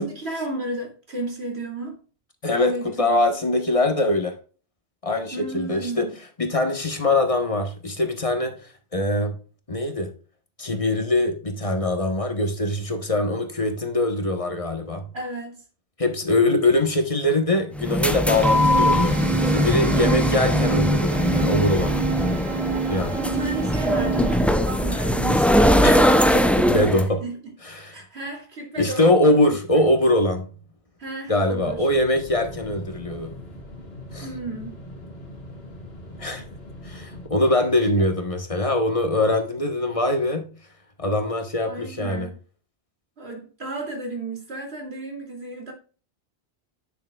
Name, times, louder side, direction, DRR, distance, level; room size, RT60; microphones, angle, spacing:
voice 1, 0.0-2.0 2.6-3.1 5.3-6.1 15.1-15.6 19.4-20.3 23.2-26.0 27.2-27.4 27.9-29.8 31.0-31.9 34.2-34.8 38.0-38.1 41.7-42.3 43.2-45.7, right 2 dB, 70° right, 2.8 m, -33 dB
voice 2, 2.4-2.7 3.0-4.3 5.0-6.1 6.4-9.4 9.7-10.1 10.6-15.0 16.0-19.2 19.5-22.1 22.9-23.2 25.8-26.0 26.3-27.2 27.6-28.0 28.8-30.5 31.3-33.3 34.1-34.3 36.2-36.4 36.8-40.5 41.0-42.3, left 1 dB, 30° left, 1.2 m, -22 dB
sound 1, 17.7-27.1, equal, ahead, 0.3 m, -20 dB
sound 2, 18.3-24.5, right 6 dB, 40° right, 0.7 m, -29 dB
sound 3, 31.6-37.3, left 1 dB, 65° left, 2.0 m, -40 dB
9.6 x 6.7 x 2.3 m
omnidirectional pair, 1.1 m